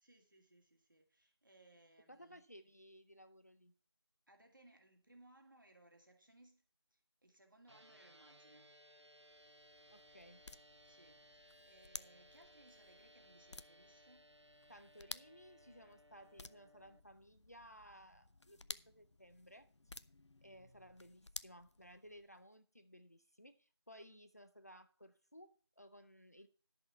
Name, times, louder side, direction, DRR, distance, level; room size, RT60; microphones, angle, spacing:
voice 1, 0.0-2.4 4.3-6.6 6.9-8.8 10.8-14.3, right 1 dB, 45° right, 2.1 m, -66 dB
voice 2, 2.1-3.7 9.9-10.4 14.7-20.0 20.4-26.5, equal, 35° left, 0.6 m, -59 dB
sound 1, 7.7-17.0, equal, 85° right, 1.0 m, -64 dB
sound 2, 9.2-22.4, left 2 dB, 85° left, 0.6 m, -55 dB
11.0 x 6.2 x 5.6 m
figure-of-eight pair, 170°, 14 cm